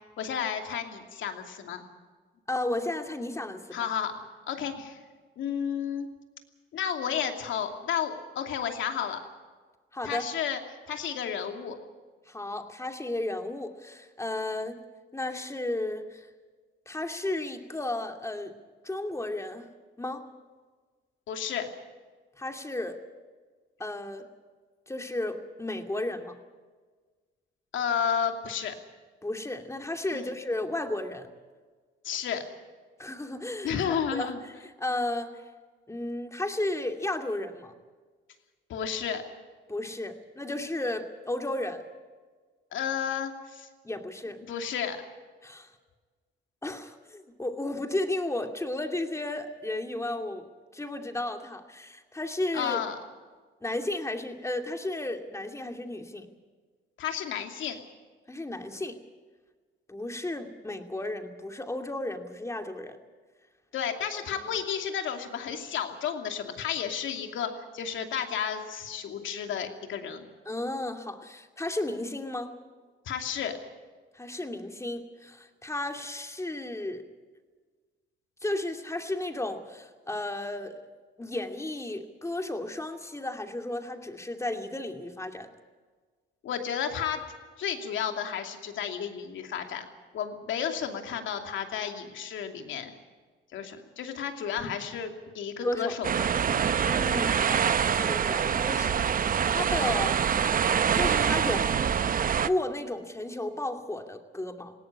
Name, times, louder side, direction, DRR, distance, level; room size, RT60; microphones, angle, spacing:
voice 1, 0.2-1.8 3.7-4.2 4.5-5.0 5.4-6.1 6.7-9.2 10.0-10.6 10.9-11.8 21.3-21.7 27.7-28.7 30.1-30.3 32.0-32.4 33.6-34.4 38.7-39.2 42.7-43.7 44.5-45.0 52.5-53.0 57.0-57.8 63.7-70.3 73.0-73.5 86.4-87.2 87.6-89.9 90.1-92.9 93.5-96.1 96.5-96.7, left 8 dB, 75° left, 5 dB, 2.7 m, -32 dB
voice 2, 2.5-3.6 9.9-10.2 12.3-14.8 15.1-16.3 16.9-18.5 18.8-19.7 20.0-20.3 22.4-23.0 23.8-24.3 24.9-26.4 29.2-31.3 33.0-33.7 34.1-34.3 34.8-35.3 35.9-37.7 39.7-41.8 43.8-44.4 45.4-45.7 46.6-50.4 50.7-52.8 53.6-56.3 58.3-59.0 59.9-63.0 70.5-72.5 74.1-77.0 78.4-80.8 81.2-85.5 95.6-96.0 96.8-100.2 100.9-101.7 102.4-104.7, left 1 dB, 15° left, 4 dB, 2.6 m, -33 dB
sound 1, 96.0-102.5, right 7 dB, 45° right, 0.8 m, -25 dB
19.5 x 17.5 x 8.7 m, 1.4 s
cardioid pair, 90°, 20 cm